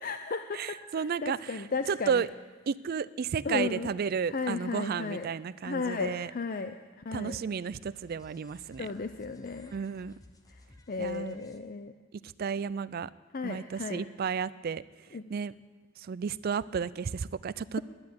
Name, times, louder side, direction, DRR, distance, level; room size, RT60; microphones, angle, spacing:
voice 1, 0.0-2.3 3.4-3.9 4.3-5.3 5.6-7.4 8.8-9.7 10.5-10.6 10.9-11.9 13.3-14.0 15.1-15.2, left 4 dB, 40° left, 8 dB, 0.5 m, -35 dB
voice 2, 0.5-2.3 2.7-6.3 7.1-8.9 9.7-10.1 11.0-11.4 12.4-13.1 13.4-14.8 15.3-15.5 16.0-17.8, right 6 dB, 45° right, 19 dB, 0.3 m, -32 dB
Sahara dance - Cinematic deep-house edm music beat, 7.7-11.6, left 2 dB, 15° left, 0.9 m, -57 dB
10.5 x 10.5 x 9.4 m, 1.3 s
head